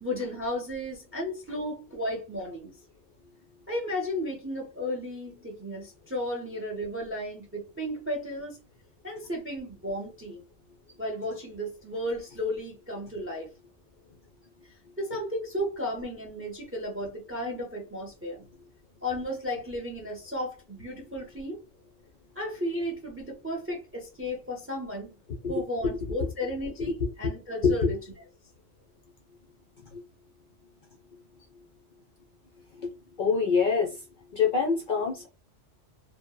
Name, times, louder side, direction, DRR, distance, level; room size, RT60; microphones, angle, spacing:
voice 1, 0.0-2.7 3.7-8.6 9.0-10.4 11.0-13.5 15.0-18.4 19.0-21.6 22.3-25.1 25.5-28.0, left 1 dB, 20° right, 0.4 m, -34 dB
voice 2, 25.3-25.6 26.9-27.0 27.2-27.3 27.6-27.9 29.9-30.0 32.8-32.9 33.2-34.0 34.3-35.3, left 5 dB, 60° left, 0.5 m, -25 dB
2.7 x 2.0 x 2.2 m
omnidirectional pair, 1.2 m